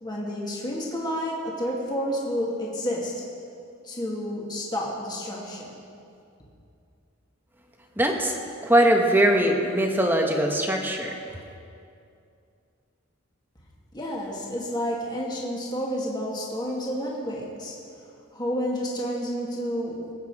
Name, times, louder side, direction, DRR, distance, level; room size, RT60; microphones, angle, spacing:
voice 1, 0.0-3.1 3.8-5.8 13.9-17.8 18.3-20.1, equal, 20° left, -4 dB, 2.2 m, -30 dB
voice 2, 8.0-8.4 8.6-11.1, right 1 dB, 10° right, 2 dB, 1.3 m, -21 dB
24.0 x 8.3 x 4.9 m, 2.5 s
head